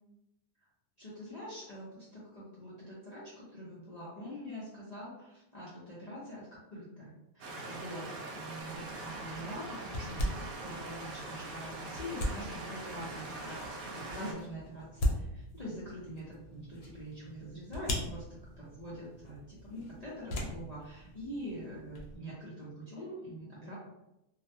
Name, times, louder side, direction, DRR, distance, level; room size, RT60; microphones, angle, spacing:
voice 1, 1.0-10.3 10.6-23.7, equal, 50° left, -9 dB, 0.5 m, -44 dB
sound 1, 7.4-14.3, right 2 dB, 85° right, 1.0 m, -42 dB
sound 2, 8.6-22.2, left 1 dB, 85° left, 1.0 m, -40 dB
2.5 x 2.1 x 2.6 m, 0.88 s
omnidirectional pair, 1.5 m